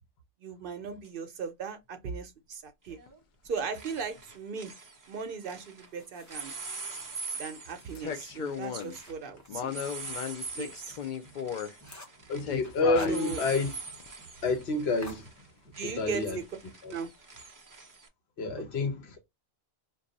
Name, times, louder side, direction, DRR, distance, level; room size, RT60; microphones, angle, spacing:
voice 1, 0.4-3.0 3.4-4.7 5.1-6.5 7.4-9.8 10.5-11.0 13.1-13.4 15.8-16.4 16.9-17.1 18.8-18.9, right 6 dB, 60° right, 0.7 m, -37 dB
sound 1, 1.0-1.1 2.9-3.2 3.4-5.9 6.3-18.1, right 4 dB, 30° right, 0.4 m, -44 dB
sound 2, 3.1-3.2 8.0-9.0 9.5-11.7 12.4-13.2 14.0-14.1, left 8 dB, 55° left, 0.6 m, -35 dB
sound 3, 5.5-6.6 7.1-10.3 10.7-10.8 11.2-11.3 11.5-12.3 12.6-13.7 14.0-14.1 14.4-14.6 15.0-15.9, left 1 dB, 20° left, 0.7 m, -50 dB
voice 2, 12.3-13.7 14.4-15.3 15.8-16.4 16.8-16.9 18.4-19.2, left 3 dB, 75° left, 1.1 m, -29 dB
2.6 x 2.3 x 3.8 m
omnidirectional pair, 1.1 m